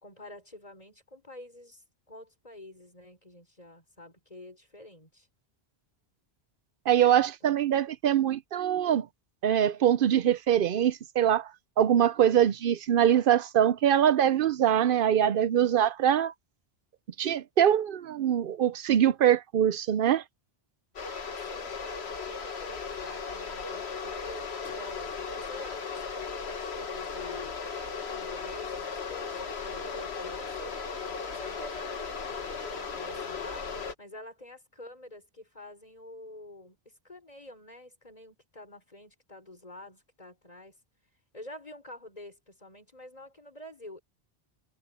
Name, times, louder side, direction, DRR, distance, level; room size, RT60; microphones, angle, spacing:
voice 1, 0.0-5.3 7.4-7.7 21.2-40.8 41.3-44.0, left 1 dB, 40° left, 4.7 m, -48 dB
voice 2, 6.9-9.1 9.4-11.5 11.8-16.3 17.2-20.2, right 10 dB, 65° right, 0.7 m, -23 dB
sound 1, 21.0-33.9, left 5 dB, 85° left, 1.7 m, -36 dB
omnidirectional pair, 1.1 m